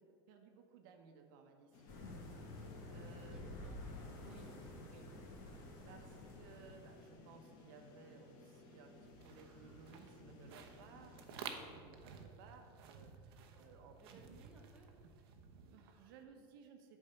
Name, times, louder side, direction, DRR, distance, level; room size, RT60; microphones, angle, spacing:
voice 1, 0.0-3.4 4.2-4.5 4.8-14.2 15.5-17.0, right 5 dB, 65° right, 4 dB, 1.0 m, -60 dB
sound 1, 1.7-11.7, left 3 dB, 40° left, 1.1 m, -60 dB
sound 2, 1.9-7.1, left 2 dB, 55° left, 1.9 m, -51 dB
voice 2, 3.1-4.7 11.9-12.2 13.5-14.9, right 2 dB, 5° right, -2 dB, 0.8 m, -64 dB
sound 3, 9.0-16.2, right 6 dB, 90° right, 0.9 m, -54 dB
8.6 x 4.8 x 7.0 m, 2.3 s
cardioid pair, 180°, 12 cm